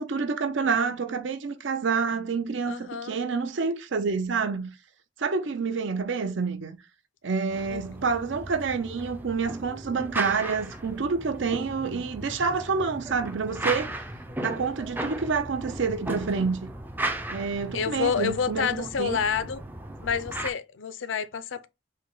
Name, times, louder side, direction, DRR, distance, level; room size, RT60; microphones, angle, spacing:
voice 1, 0.0-4.7 5.2-6.8 7.2-14.0 14.4-16.7 17.3-19.2, right 5 dB, 75° right, 0.6 m, -28 dB
voice 2, 2.7-3.2 7.7-7.8 17.7-19.6 20.0-21.7, left 6 dB, 80° left, 0.5 m, -28 dB
sound 1, 7.5-20.5, right 1 dB, 10° right, 0.3 m, -36 dB
5.0 x 2.1 x 3.8 m
head